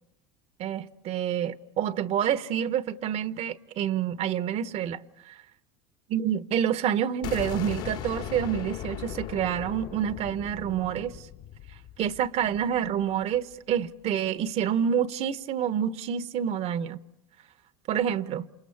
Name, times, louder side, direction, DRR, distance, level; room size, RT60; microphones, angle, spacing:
voice 1, 0.6-5.0 5.3-5.4 6.1-11.1 12.0-17.0 17.9-18.5, right 9 dB, 50° right, 1.1 m, -28 dB
sound 1, 7.2-13.0, left 10 dB, 70° left, 2.8 m, -38 dB
28.5 x 28.0 x 7.1 m
supercardioid pair, 95°, 14 cm